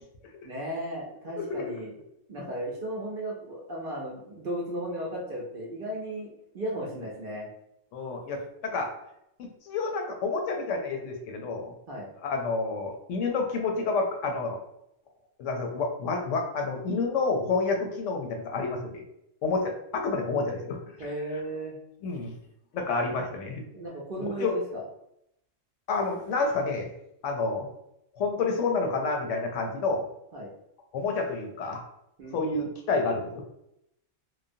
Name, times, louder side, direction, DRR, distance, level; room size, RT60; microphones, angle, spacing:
voice 1, 0.4-1.9 2.3-7.5 11.9-12.1 21.0-21.7 23.7-24.8 30.3-30.5 32.2-32.7, right 1 dB, 55° right, -2 dB, 0.7 m, -35 dB
voice 2, 7.9-8.9 9.4-11.7 12.2-14.6 15.4-19.0 19.4-20.8 22.0-22.3 22.7-23.6 24.4-24.5 25.9-26.9 27.2-27.7 28.2-30.1 30.9-31.8 32.3-33.4, left 3 dB, 75° left, 3 dB, 0.9 m, -29 dB
3.0 x 2.0 x 2.6 m, 0.79 s
omnidirectional pair, 1.3 m